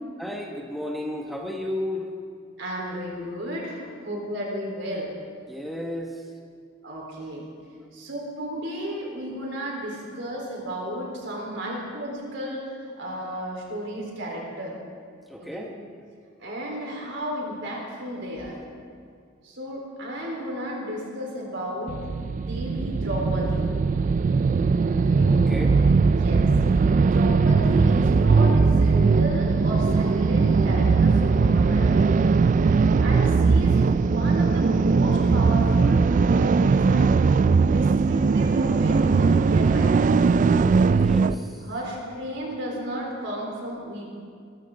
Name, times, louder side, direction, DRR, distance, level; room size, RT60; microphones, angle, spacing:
voice 1, 0.2-2.1 5.5-6.1 15.3-15.7 25.3-25.8 41.0-41.3, left 1 dB, ahead, 0 dB, 1.2 m, -32 dB
voice 2, 2.6-5.1 6.8-7.5 7.9-14.8 15.4-15.6 16.4-18.6 19.4-22.1 22.4-23.7 24.9-25.4 26.1-26.5 27.1-32.0 33.0-37.2 37.6-40.4 40.8-41.1 41.6-44.2, equal, 65° right, -2 dB, 4.1 m, -33 dB
sound 1, 21.9-41.3, right 4 dB, 40° right, 0.3 m, -20 dB
23.0 x 13.5 x 3.9 m, 2.2 s
head